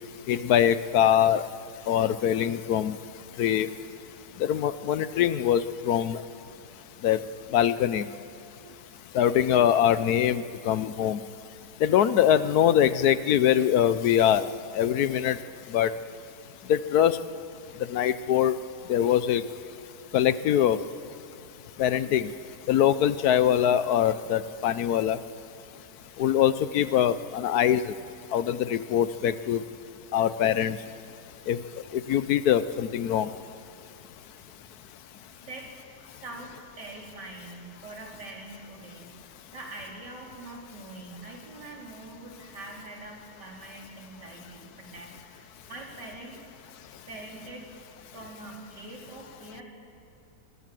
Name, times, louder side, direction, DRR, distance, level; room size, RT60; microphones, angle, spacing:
voice 1, 0.3-1.4 1.9-3.0 3.4-3.7 4.4-6.2 7.0-7.2 7.5-8.0 9.1-11.2 11.8-14.5 14.8-15.4 15.7-15.9 16.7-17.2 17.9-18.6 18.9-19.4 20.1-20.8 21.8-22.3 22.7-25.2 26.2-27.8 28.3-29.6 30.1-30.8 31.5-31.6 32.1-33.3, left 10 dB, 70° left, 14 dB, 1.2 m, -23 dB
voice 2, 35.3-35.7 36.2-39.1 39.5-46.4 47.1-47.7 48.1-49.6, right 2 dB, 85° right, -2 dB, 4.7 m, -43 dB
25.5 x 20.0 x 7.6 m, 2.7 s
omnidirectional pair, 1.8 m